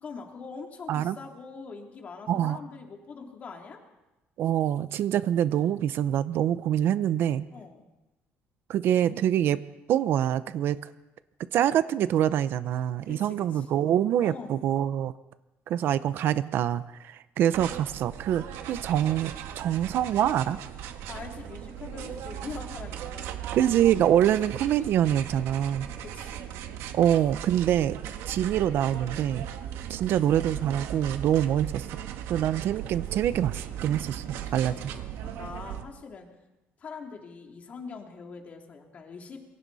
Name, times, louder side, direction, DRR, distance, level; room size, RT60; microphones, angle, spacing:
voice 1, 0.0-3.8 7.5-7.9 13.0-13.7 14.1-14.6 21.1-23.4 26.0-26.4 34.4-36.3 36.8-39.4, left 5 dB, 35° left, 2 dB, 3.0 m, -43 dB
voice 2, 2.3-2.6 4.4-7.4 8.7-9.6 9.9-10.9 11.5-15.1 15.7-20.6 23.6-25.9 26.9-28.0 28.3-29.4 29.9-31.9 32.3-34.2 34.5-34.7, right 10 dB, 55° right, 14 dB, 0.7 m, -25 dB
sound 1, 17.5-35.8, right 10 dB, 80° right, 1.7 m, -38 dB
27.5 x 23.0 x 4.1 m, 1.0 s
cardioid pair, 155°, 4 cm